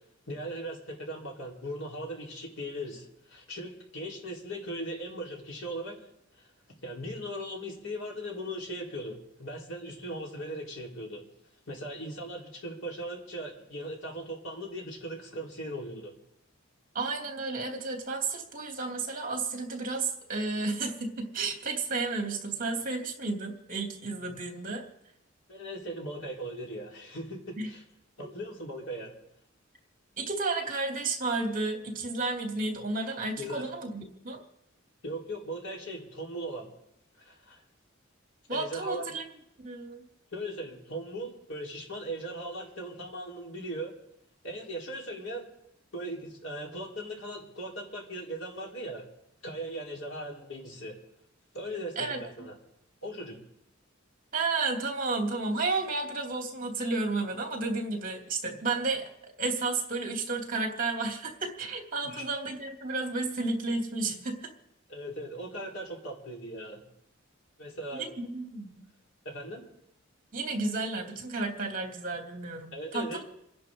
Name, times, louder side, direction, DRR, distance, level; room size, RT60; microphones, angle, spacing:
voice 1, 0.3-6.0 6.4-6.5 6.8-11.2 11.7-16.1 25.5-27.8 28.2-29.2 33.4-33.7 35.0-36.7 37.2-37.6 38.5-39.1 40.3-43.9 44.4-45.4 45.9-49.1 49.4-51.0 51.5-52.6 53.0-53.4 62.0-62.2 64.9-66.8 67.6-68.1 69.2-69.6 72.7-73.2, right 1 dB, 85° left, -2 dB, 4.4 m, -38 dB
voice 2, 16.9-24.8 27.6-27.7 30.2-34.4 38.5-39.3 39.6-40.0 52.0-52.5 54.3-59.1 59.4-64.5 67.9-68.8 70.3-73.2, right 3 dB, 40° right, 2 dB, 2.9 m, -32 dB
28.5 x 11.0 x 3.9 m, 0.80 s
head